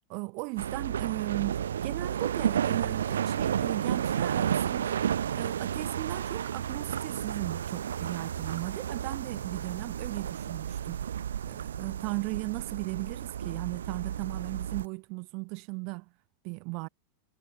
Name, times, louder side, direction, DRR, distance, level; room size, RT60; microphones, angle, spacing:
voice 1, 0.1-5.0 5.3-11.1 11.5-16.1 16.4-16.9, right 32 dB, 45° right, 0.9 m, -37 dB
sound 1, 0.6-14.9, right 9 dB, 65° right, 0.6 m, -32 dB
figure-of-eight pair, 90°, 0 cm